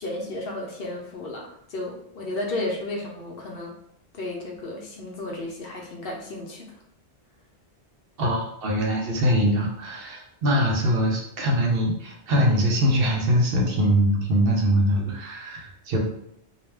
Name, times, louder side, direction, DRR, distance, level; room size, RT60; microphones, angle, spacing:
voice 1, 0.0-3.8 4.1-6.7, left 2 dB, 65° left, -1 dB, 0.7 m, -33 dB
voice 2, 8.2-16.0, equal, 65° right, 0 dB, 0.7 m, -22 dB
2.3 x 2.1 x 3.2 m, 0.75 s
omnidirectional pair, 1.1 m